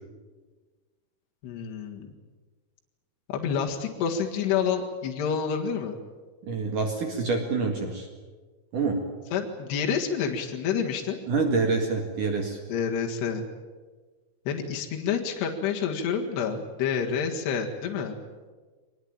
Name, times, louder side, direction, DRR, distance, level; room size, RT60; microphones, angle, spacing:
voice 1, 1.4-2.1 3.3-6.0 9.3-11.2 12.7-13.5 14.5-18.2, left 7 dB, 70° left, 1 dB, 3.9 m, -28 dB
voice 2, 6.4-8.1 8.7-9.0 11.3-12.6, right 4 dB, 50° right, 3 dB, 3.0 m, -26 dB
24.0 x 21.0 x 8.9 m, 1.4 s
omnidirectional pair, 5.3 m